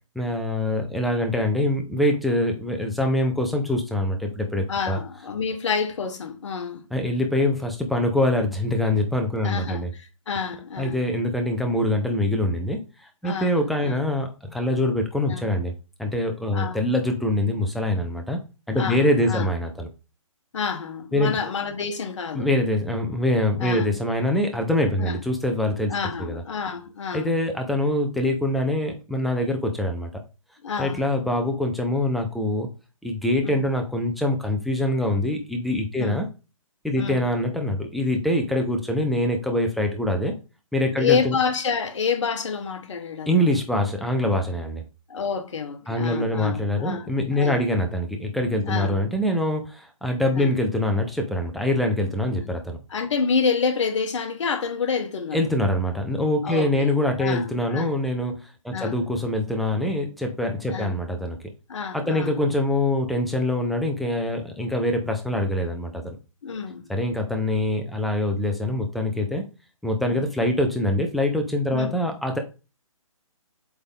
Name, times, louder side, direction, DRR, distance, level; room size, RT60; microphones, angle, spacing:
voice 1, 0.2-5.0 6.9-9.9 10.8-12.8 13.2-15.7 16.0-19.9 21.1-21.4 22.3-25.9 26.2-26.4 27.1-30.1 30.8-32.7 33.0-36.3 36.8-40.3 40.7-41.4 43.3-44.8 45.9-52.8 55.3-61.4 61.9-66.2 66.9-69.5 69.8-72.4, left 1 dB, ahead, 0.3 m, -24 dB
voice 2, 4.7-6.9 9.4-11.0 13.2-14.0 15.3-15.5 16.5-16.8 18.7-19.5 20.5-22.5 23.6-23.9 25.0-25.2 25.9-27.3 30.6-31.0 33.4-33.6 35.9-36.2 36.9-37.2 41.0-43.6 45.1-47.7 48.7-49.0 50.3-50.6 52.4-52.5 52.9-55.4 56.4-56.9 57.2-58.0 58.7-59.0 60.7-60.9 61.7-62.4 66.4-66.9 70.1-70.3 71.7-72.0, left 5 dB, 55° left, 1.4 m, -28 dB
7.8 x 3.6 x 3.6 m
hypercardioid pair, 150°, 18 cm